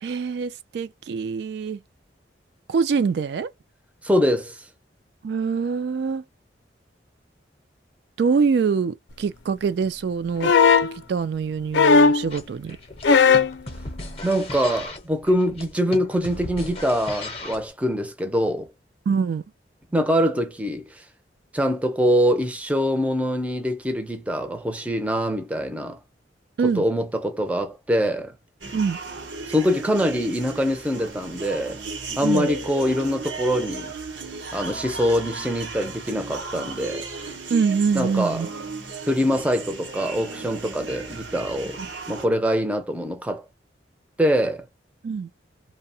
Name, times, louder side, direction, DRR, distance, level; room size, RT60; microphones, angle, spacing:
voice 1, 0.0-1.8 2.7-3.5 5.2-6.2 8.2-10.5 10.8-12.8 19.1-19.4 26.6-26.8 28.7-29.0 32.2-32.5 37.5-38.5 41.8-41.9 45.0-45.3, right 5 dB, 65° right, 0.3 m, -24 dB
voice 2, 4.0-4.6 14.2-18.7 19.9-21.0 21.5-26.0 26.6-28.3 29.5-31.8 32.2-33.9 34.5-37.1 37.9-38.4 39.1-41.8 42.1-43.5 44.2-44.7, equal, 5° right, 0.5 m, -24 dB
sound 1, 10.4-10.9 11.7-12.3 13.0-13.6 14.8-14.9, left 5 dB, 85° left, 0.5 m, -16 dB
sound 2, 12.3-17.7, left 2 dB, 35° left, 0.7 m, -37 dB
sound 3, 28.6-42.3, right 4 dB, 90° right, 0.9 m, -35 dB
2.7 x 2.1 x 2.6 m
head